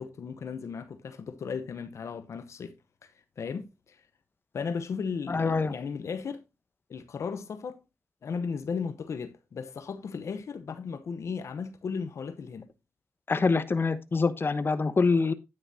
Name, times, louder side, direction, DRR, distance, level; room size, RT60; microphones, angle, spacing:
voice 1, 0.0-2.8 3.0-4.0 4.5-6.4 6.9-7.8 8.2-12.7, left 5 dB, 80° left, 0.9 m, -36 dB
voice 2, 5.3-5.7 13.3-15.3, left 4 dB, 50° left, 1.0 m, -25 dB
9.7 x 9.6 x 2.7 m
cardioid pair, 55°, 5 cm